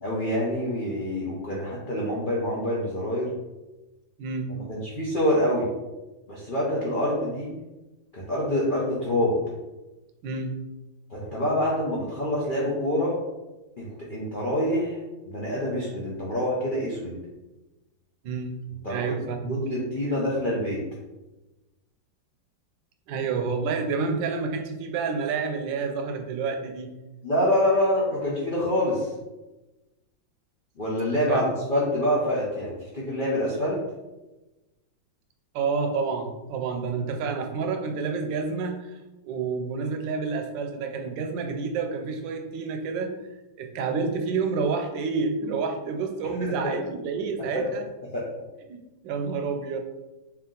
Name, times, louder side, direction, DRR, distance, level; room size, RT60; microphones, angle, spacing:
voice 1, 0.0-3.3 4.7-5.7 6.3-7.5 8.1-9.4 11.1-13.2 13.8-15.0 15.3-17.2 18.8-19.1 19.5-20.8 27.2-29.1 30.8-33.8 46.4-46.7 48.1-48.2, left 1 dB, 90° left, -5 dB, 0.4 m, -26 dB
voice 2, 4.2-4.5 10.2-10.5 18.2-18.5 18.9-19.6 23.1-26.9 31.1-31.5 35.5-39.0 39.2-43.1 43.6-47.9 48.7-49.8, right 5 dB, 80° right, 5 dB, 1.2 m, -29 dB
3.4 x 2.9 x 3.7 m, 1.1 s
omnidirectional pair, 2.1 m